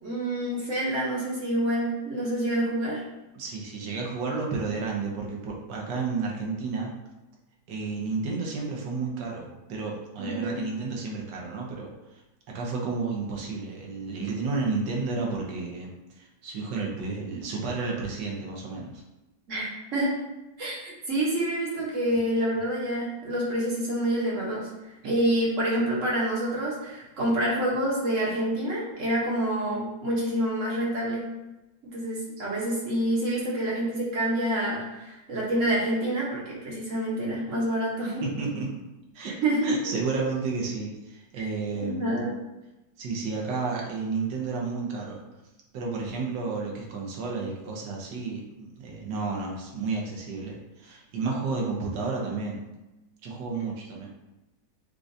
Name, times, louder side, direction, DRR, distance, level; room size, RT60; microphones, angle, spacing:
voice 1, 0.0-3.0 10.2-10.6 19.5-20.1 20.6-24.7 25.0-31.2 31.8-38.2 39.4-39.7 41.4-41.5 41.7-42.4, right 1 dB, 50° right, -5 dB, 1.3 m, -27 dB
voice 2, 3.3-6.9 7.7-12.2 12.5-19.0 38.2-38.8 39.1-39.3 39.6-42.2 43.0-45.2 45.7-52.6 53.2-54.1, right 4 dB, 85° right, -1 dB, 1.5 m, -32 dB
6.5 x 2.5 x 2.6 m, 1.0 s
omnidirectional pair, 1.9 m